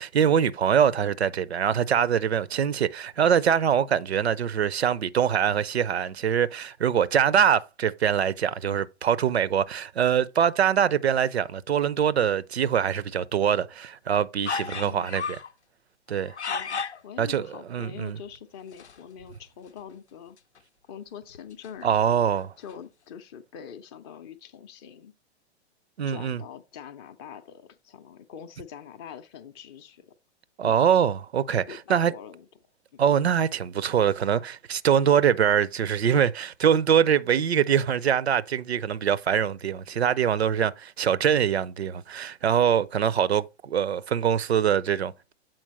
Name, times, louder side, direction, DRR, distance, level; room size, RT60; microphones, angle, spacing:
voice 1, 0.0-15.4 16.1-16.3 17.2-18.2 21.8-22.5 26.0-26.4 30.6-32.1 33.0-45.3, right 8 dB, 70° right, 0.5 m, -23 dB
sound 1, 14.5-15.5 16.1-17.0 18.7-19.0 19.3-19.4 19.7-19.8 20.4-20.6 21.2-22.2 22.7-22.8, left 5 dB, 80° left, 0.6 m, -34 dB
voice 2, 14.5-15.1 16.5-20.4 20.9-25.1 26.1-30.1 30.6-30.8 31.7-32.5 32.9-33.0, left 8 dB, 25° left, 0.5 m, -44 dB
7.7 x 4.4 x 4.1 m
figure-of-eight pair, 105°, 34 cm